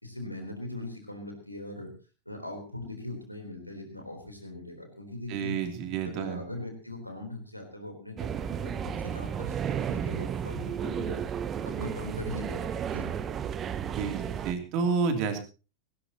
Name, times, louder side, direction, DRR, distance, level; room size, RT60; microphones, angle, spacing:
voice 1, 0.0-1.9 2.3-5.6 6.0-11.2 11.6-13.1, left 2 dB, 90° left, 4 dB, 3.8 m, -40 dB
voice 2, 5.3-6.4 14.0-15.4, right 5 dB, 40° right, 5 dB, 3.1 m, -30 dB
sound 1, 8.2-14.5, right 8 dB, 25° right, 1.0 m, -33 dB
18.0 x 17.0 x 3.0 m, 0.33 s
figure-of-eight pair, 90°, 0 cm